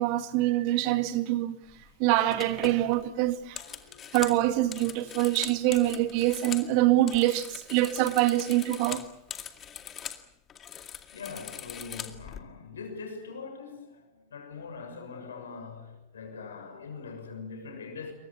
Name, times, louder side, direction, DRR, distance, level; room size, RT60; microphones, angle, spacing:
voice 1, 0.0-1.6 2.0-3.6 4.1-9.0, right 15 dB, 45° right, 2.0 m, -25 dB
sound 1, 1.7-1.9 2.3-6.7 7.0-10.2 10.5-12.4, left 8 dB, 25° left, 2.2 m, -41 dB
voice 2, 3.5-4.1 10.8-18.1, left 5 dB, 65° left, 6.8 m, -42 dB
28.0 x 23.5 x 7.2 m
figure-of-eight pair, 90°, 0 cm